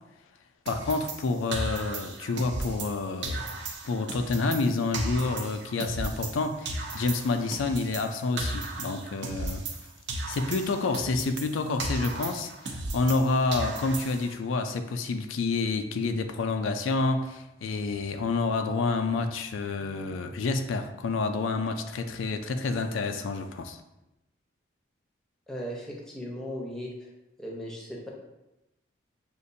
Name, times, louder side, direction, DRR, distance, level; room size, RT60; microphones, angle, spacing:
voice 1, 0.7-3.6 3.8-9.6 10.3-23.8, left 3 dB, 85° left, 7 dB, 0.4 m, -28 dB
sound 1, 0.7-3.0 3.2-6.4 6.6-9.8 10.1-13.2 13.5-14.4, right 2 dB, 60° right, 0.6 m, -35 dB
voice 2, 25.5-27.1 27.4-28.1, equal, ahead, -3 dB, 0.7 m, -37 dB
6.5 x 2.5 x 2.7 m, 0.95 s
head